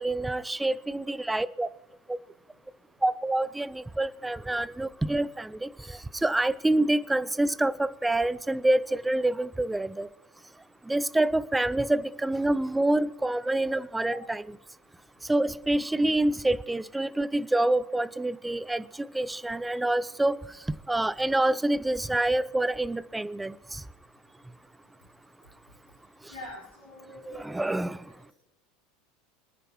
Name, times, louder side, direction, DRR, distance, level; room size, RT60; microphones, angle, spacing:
voice 1, 0.0-1.7 3.0-10.1 10.9-14.4 15.3-20.4 20.9-23.5 27.4-28.0, right 1 dB, 10° right, 0.5 m, -27 dB
voice 2, 26.3-27.5, left 1 dB, 85° left, 4.4 m, -43 dB
26.5 x 9.8 x 3.1 m
figure-of-eight pair, 80°, 0 cm